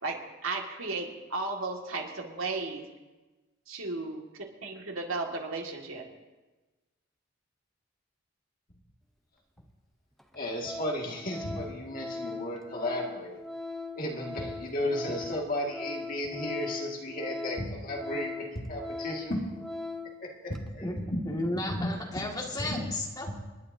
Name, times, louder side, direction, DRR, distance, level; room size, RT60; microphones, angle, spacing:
voice 1, 0.0-2.9 3.7-6.1, right 3 dB, 85° right, 1 dB, 2.0 m, -35 dB
Organ, 9.6-9.7 10.2-10.4 10.6-20.2 20.5-20.7, left 2 dB, ahead, 0.7 m, -40 dB
voice 2, 10.3-13.4 14.0-19.6 20.2-22.2 22.6-22.9, left 1 dB, 40° left, -1 dB, 2.1 m, -34 dB
voice 3, 21.3-23.3, left 1 dB, 20° left, -1 dB, 2.0 m, -33 dB
28.5 x 11.0 x 2.7 m, 1.2 s
head